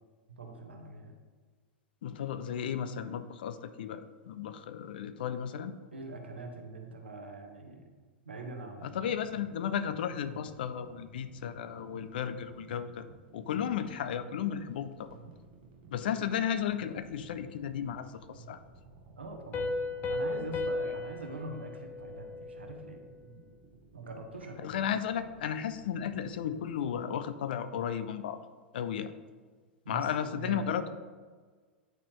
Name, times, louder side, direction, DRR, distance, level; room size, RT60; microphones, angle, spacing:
voice 1, 0.4-1.1 5.9-7.9 8.2-9.2 19.2-19.8 20.1-23.0 23.9-24.8 29.8-30.8, right 2 dB, 75° right, 3 dB, 1.0 m, -43 dB
voice 2, 2.0-5.7 8.8-13.1 13.3-15.1 15.9-18.6 24.6-28.4 28.7-29.1 29.9-30.9, left 8 dB, 55° left, 11 dB, 0.4 m, -34 dB
sound 1, 8.8-26.9, right 3 dB, 50° right, 1.0 m, -55 dB
Piano, 19.5-23.0, left 2 dB, 30° left, 0.8 m, -35 dB
9.0 x 4.2 x 3.2 m, 1.5 s
figure-of-eight pair, 95°, 6 cm